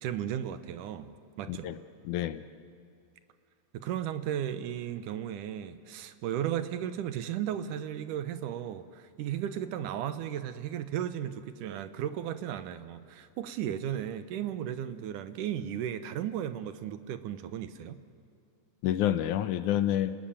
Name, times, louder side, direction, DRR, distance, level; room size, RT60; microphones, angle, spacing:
voice 1, 0.0-1.7 3.7-18.0, right 10 dB, 90° right, 11 dB, 2.6 m, -35 dB
voice 2, 1.5-1.8 2.0-2.4 18.8-20.2, left 11 dB, 75° left, 12 dB, 2.3 m, -28 dB
29.5 x 19.5 x 8.8 m, 2.5 s
omnidirectional pair, 3.6 m